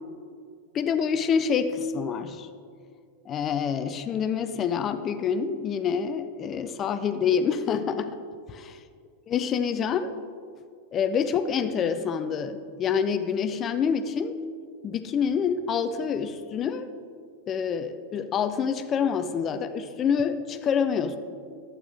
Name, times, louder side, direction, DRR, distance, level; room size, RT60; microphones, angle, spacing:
voice 1, 0.7-2.5 3.3-8.2 8.5-8.8 9.3-10.1 10.9-14.4 14.8-16.9 17.5-21.2, left 7 dB, 30° left, 10 dB, 0.4 m, -27 dB
12.0 x 8.8 x 3.2 m, 2.2 s
figure-of-eight pair, 90°, 0 cm